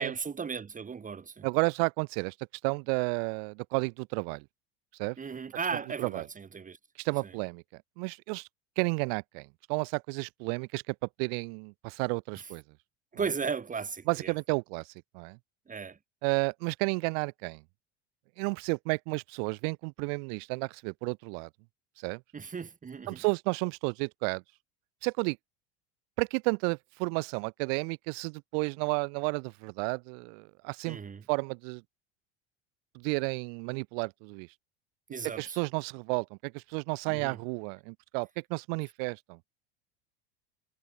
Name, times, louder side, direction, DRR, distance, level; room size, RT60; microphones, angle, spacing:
voice 1, 0.0-1.5 5.2-6.8 7.2-7.3 12.3-12.5 13.1-14.3 15.7-16.0 22.3-23.2 30.8-31.2 35.1-35.6 37.1-37.4, right 5 dB, 25° right, 2.7 m, -36 dB
voice 2, 1.4-2.3 2.6-4.4 5.0-5.2 6.0-6.2 7.0-7.6 8.0-8.5 8.8-12.6 14.1-15.4 16.2-17.6 18.4-21.5 22.0-22.2 23.1-24.4 25.0-25.4 26.2-31.0 31.3-31.8 32.9-34.5 35.4-39.4, right 40 dB or more, 60° right, 1.5 m, -32 dB
hypercardioid pair, 80°, 33 cm